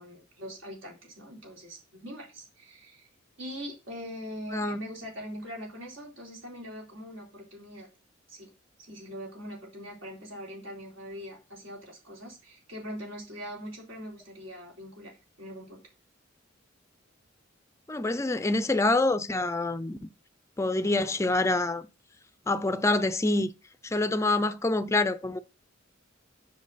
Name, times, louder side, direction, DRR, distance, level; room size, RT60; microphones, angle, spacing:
voice 1, 0.0-1.8 2.0-3.1 3.4-7.9 8.3-8.5 8.8-15.8, equal, 75° right, 4.0 m, -42 dB
voice 2, 17.9-20.0 20.6-21.8 22.5-23.5 23.8-25.4, left 2 dB, 15° left, 0.4 m, -26 dB
7.5 x 5.8 x 4.0 m
head